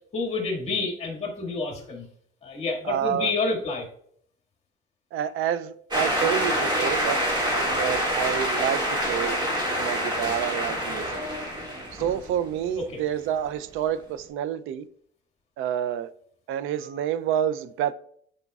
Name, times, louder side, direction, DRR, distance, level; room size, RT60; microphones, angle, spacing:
voice 1, 0.1-2.1 2.4-3.9, left 3 dB, 30° left, 2.0 m, -28 dB
voice 2, 2.8-3.3 5.1-7.2 7.5-9.4 9.8-11.2 11.9-14.9 15.6-16.1 16.5-17.9, right 10 dB, 75° right, 0.5 m, -28 dB
sound 1, 5.9-12.7, equal, 20° right, 1.9 m, -26 dB
11.0 x 5.1 x 2.4 m
cardioid pair, 155°, 21 cm